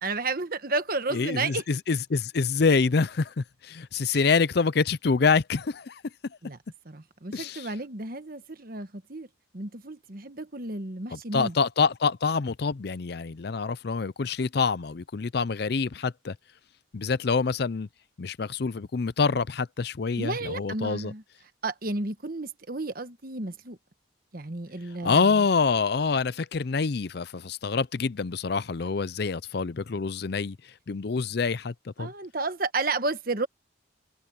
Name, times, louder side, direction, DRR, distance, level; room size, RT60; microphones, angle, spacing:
voice 1, 0.0-1.6 4.1-4.3 6.4-6.6 6.8-9.3 9.5-11.5 20.2-21.2 21.6-23.8 24.3-25.4 32.0-33.5, right 3 dB, 45° right, 1.3 m, -32 dB
voice 2, 1.1-6.0 7.3-7.7 11.1-16.4 16.9-17.9 18.2-21.1 25.0-30.6 30.9-32.1, left 5 dB, 55° left, 0.5 m, -26 dB
head